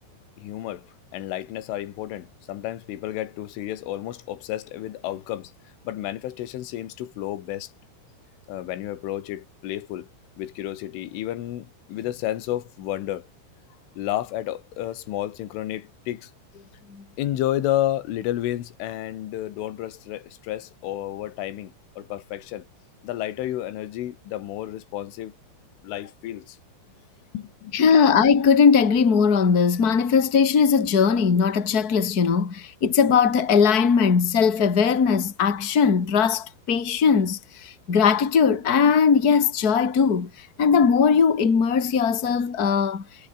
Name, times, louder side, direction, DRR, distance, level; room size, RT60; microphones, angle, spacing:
voice 1, 0.4-5.5 5.9-7.7 8.5-10.1 10.4-13.3 14.0-16.3 17.2-22.7 23.0-25.4 25.8-26.6 27.3-28.1, left 13 dB, 70° left, 4.5 m, -31 dB
voice 2, 27.7-43.0, left 6 dB, 30° left, 1.8 m, -19 dB
omnidirectional pair, 6.0 m